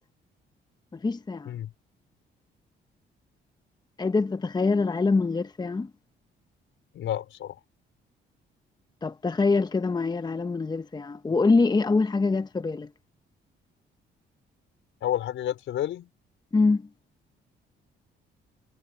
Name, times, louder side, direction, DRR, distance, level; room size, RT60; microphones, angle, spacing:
voice 1, 0.9-1.5 4.0-5.9 9.0-12.9 16.5-16.9, left 3 dB, 20° left, 0.9 m, -24 dB
voice 2, 6.9-7.5 15.0-16.1, left 11 dB, 80° left, 4.8 m, -30 dB
cardioid pair, 90°, 20 cm